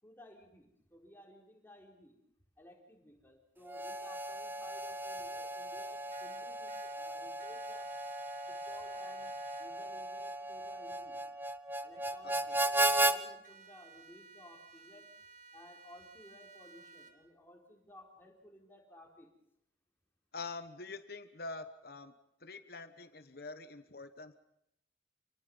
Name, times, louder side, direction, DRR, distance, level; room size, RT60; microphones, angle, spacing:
voice 1, 0.0-2.2 2.6-7.9 8.5-11.2 11.8-15.1 15.5-19.3, left 1 dB, 10° left, -1 dB, 4.3 m, -57 dB
Harmonica, 3.7-13.2, right 2 dB, 10° right, 0.8 m, -36 dB
sound 1, 6.1-7.0 7.4-9.7 13.4-17.1, right 5 dB, 45° right, 2.3 m, -56 dB
voice 2, 20.3-22.1 22.4-24.3, left 3 dB, 55° left, 10 dB, 1.2 m, -45 dB
28.0 x 20.0 x 5.5 m, 0.80 s
head